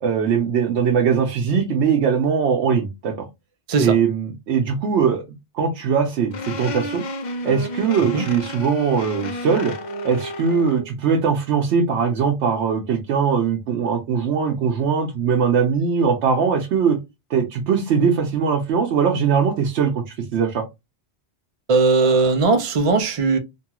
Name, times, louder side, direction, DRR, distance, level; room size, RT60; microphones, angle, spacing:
voice 1, 0.0-3.1 3.8-5.2 5.5-7.0 7.4-9.7 10.0-17.0 17.3-20.6, right 6 dB, 90° right, 1.0 m, -21 dB
sound 1, 6.3-10.9, left 1 dB, 55° left, 0.6 m, -31 dB
voice 2, 21.7-23.4, right 4 dB, 45° right, 0.4 m, -18 dB
2.9 x 2.3 x 2.8 m
omnidirectional pair, 1.1 m